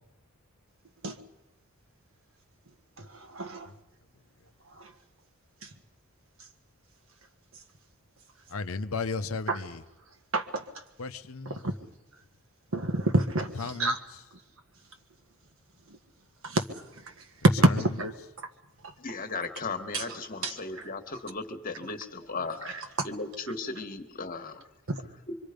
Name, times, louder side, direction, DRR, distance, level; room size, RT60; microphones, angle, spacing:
voice 1, 3.0-3.7 4.8-4.9 5.6-5.7 9.5-9.6 10.3-10.6 11.5-11.7 12.7-14.0 16.4-16.6 17.4-18.5 18.8-18.9 19.9-20.0 20.4-20.5 23.0-23.1 24.9-25.0, right 1 dB, 65° right, 6 dB, 1.7 m, -27 dB
voice 2, 8.5-9.8 11.0-11.6 13.5-14.0 17.6-17.9, left 4 dB, 70° left, 10 dB, 0.8 m, -34 dB
voice 3, 19.0-24.6 25.3-25.4, left 3 dB, 40° left, 6 dB, 1.6 m, -36 dB
25.0 x 24.5 x 5.2 m, 0.99 s
head